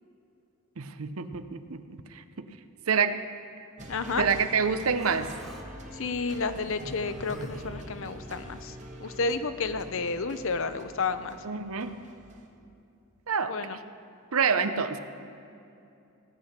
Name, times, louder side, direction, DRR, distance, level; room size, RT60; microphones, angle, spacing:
voice 1, 0.8-2.5 2.9-3.2 4.2-5.3 11.4-12.0 13.3-13.5 14.3-15.0, right 6 dB, 70° right, 10 dB, 0.7 m, -27 dB
sound 1, 3.8-12.5, right 1 dB, 35° right, 1.4 m, -45 dB
voice 2, 3.9-4.3 5.9-8.7 9.0-11.4 13.5-13.8, left 4 dB, 60° left, 11 dB, 0.7 m, -31 dB
Human voice, 4.9-5.7 6.6-8.6, equal, ahead, 1.5 m, -45 dB
17.0 x 9.8 x 5.8 m, 2.7 s
head